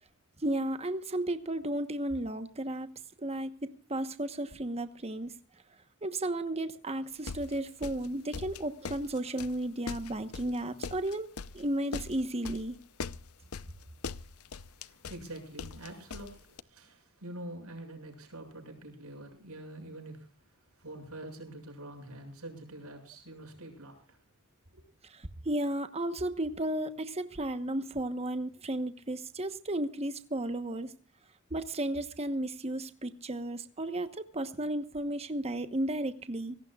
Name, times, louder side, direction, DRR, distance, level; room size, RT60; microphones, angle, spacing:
voice 1, 0.4-2.9 3.2-5.3 6.0-12.8 25.0-30.9 31.5-36.6, right 1 dB, 30° right, 1.1 m, -34 dB
sound 1, 7.3-16.6, left 5 dB, 80° left, 0.7 m, -41 dB
voice 2, 14.8-20.3 20.8-24.2 24.7-24.8, right 1 dB, 85° right, 6.8 m, -46 dB
25.5 x 18.0 x 2.4 m
head